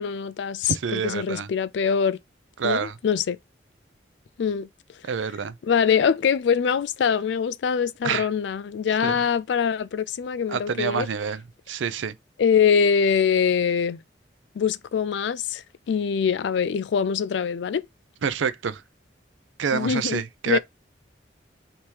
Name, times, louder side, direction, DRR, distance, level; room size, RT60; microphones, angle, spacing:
voice 1, 0.0-2.2 2.6-3.4 4.4-4.7 5.6-11.1 12.4-14.0 14.6-17.8 19.7-20.2 20.5-20.6, left 7 dB, 70° left, 0.3 m, -23 dB
voice 2, 0.6-1.5 2.6-2.9 5.0-5.5 8.0-8.3 9.0-9.2 10.5-11.4 11.7-12.1 18.2-18.8 19.6-20.6, right 6 dB, 85° right, 0.5 m, -27 dB
3.4 x 2.9 x 4.4 m
head